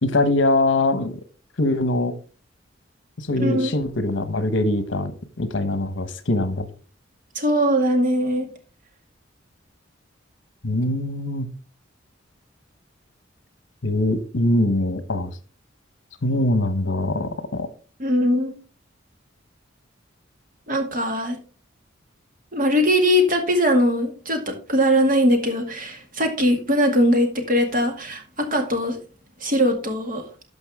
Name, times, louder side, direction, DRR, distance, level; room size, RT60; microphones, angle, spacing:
voice 1, 0.0-1.2 1.6-2.1 3.2-5.1 5.4-6.7 10.6-11.5 13.8-15.3 16.2-17.7, left 2 dB, 70° left, 11 dB, 1.1 m, -22 dB
voice 2, 3.4-3.7 7.4-8.5 18.0-18.5 20.7-21.4 22.5-29.0 29.4-30.2, equal, 45° right, 4 dB, 2.1 m, -21 dB
12.5 x 5.5 x 3.6 m, 0.37 s
head